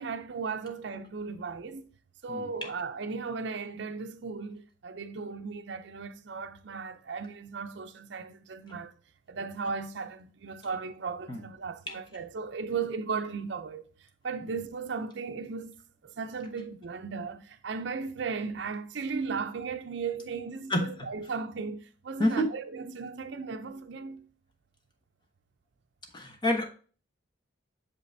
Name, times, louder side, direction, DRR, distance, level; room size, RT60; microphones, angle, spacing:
voice 1, 0.0-1.9 2.2-8.9 9.3-13.9 14.2-15.8 16.0-24.3, right 5 dB, 60° right, 0.5 m, -36 dB
voice 2, 22.2-22.5 26.1-26.7, left 1 dB, 25° left, 1.0 m, -28 dB
6.6 x 5.4 x 2.7 m
head